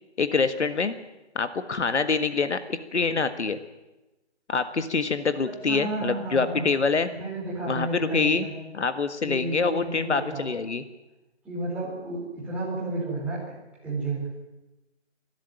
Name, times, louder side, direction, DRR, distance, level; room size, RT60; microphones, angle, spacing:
voice 1, 0.2-0.9 1.3-3.6 4.5-7.1 7.6-8.5 8.7-10.8, left 4 dB, 75° left, 10 dB, 1.7 m, -25 dB
voice 2, 5.6-6.7 7.1-8.6 9.2-10.5 11.4-13.4 13.8-14.3, right 2 dB, 5° right, -7 dB, 4.6 m, -32 dB
23.5 x 12.5 x 9.1 m, 1.0 s
hypercardioid pair, 170°, 35 cm